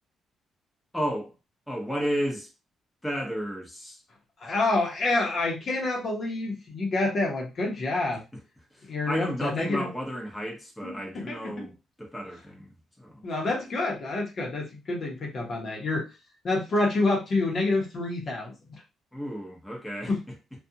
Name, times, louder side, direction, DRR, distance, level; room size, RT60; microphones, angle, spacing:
voice 1, 0.9-1.3 1.7-2.5 3.0-4.0 8.7-13.2 19.1-20.3, equal, 5° left, 0.9 m, -33 dB
voice 2, 4.4-8.2 8.9-9.9 10.8-11.6 13.2-16.1 16.4-18.5 20.1-20.2, left 2 dB, 50° left, 0.9 m, -28 dB
2.5 x 2.4 x 2.7 m
cardioid pair, 90°, 0 cm